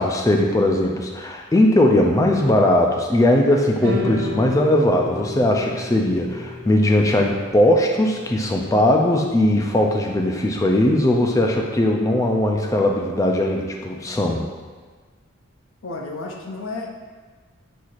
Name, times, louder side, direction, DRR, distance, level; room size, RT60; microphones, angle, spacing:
voice 1, 0.0-14.5, left 1 dB, 15° left, 1 dB, 0.3 m, -19 dB
sound 1, 3.8-10.1, left 2 dB, 70° right, 0.9 m, -32 dB
voice 2, 15.8-16.9, left 3 dB, 70° left, 1 dB, 0.6 m, -31 dB
4.5 x 4.2 x 2.4 m, 1.4 s
head